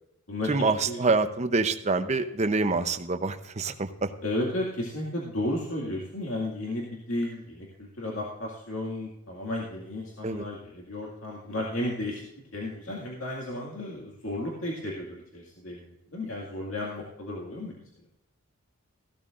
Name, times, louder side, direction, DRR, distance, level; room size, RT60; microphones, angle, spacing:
voice 1, 0.5-4.1 10.2-10.5, right 3 dB, 30° right, 9 dB, 0.7 m, -26 dB
voice 2, 4.2-12.3 12.5-17.8, left 1 dB, 75° left, -3 dB, 2.1 m, -33 dB
15.5 x 12.5 x 2.5 m, 0.81 s
head